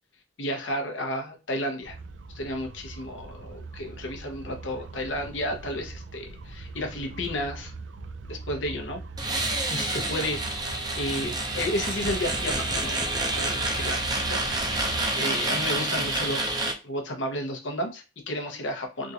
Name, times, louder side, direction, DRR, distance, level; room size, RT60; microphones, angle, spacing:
voice 1, 0.4-2.0 2.3-7.7 8.3-9.0 9.7-14.9 15.1-19.1, left 1 dB, 85° left, 4 dB, 0.9 m, -32 dB
sound 1, 1.8-15.1, right 3 dB, 75° right, 0.4 m, -40 dB
sound 2, 9.2-16.7, right 2 dB, 20° right, 0.5 m, -28 dB
3.6 x 2.5 x 2.8 m, 0.30 s
head